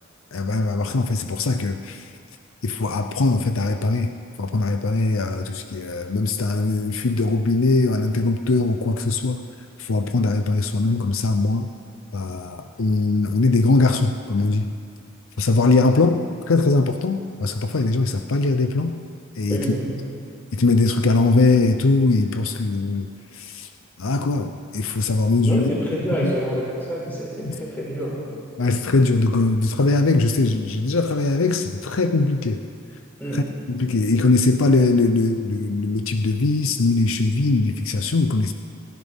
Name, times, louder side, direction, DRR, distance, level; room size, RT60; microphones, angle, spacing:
voice 1, 0.3-2.1 2.6-4.1 4.4-9.4 9.8-11.7 12.1-14.7 15.4-16.2 16.5-18.9 19.4-19.8 20.5-23.1 23.3-23.7 24.0-25.7 26.2-26.3 27.4-27.6 28.6-32.6 33.3-38.5, left 3 dB, 80° left, 7 dB, 0.6 m, -21 dB
voice 2, 19.5-19.9 25.5-28.2 33.2-33.4, equal, 10° left, -7 dB, 4.5 m, -27 dB
28.5 x 10.5 x 3.6 m, 2.3 s
head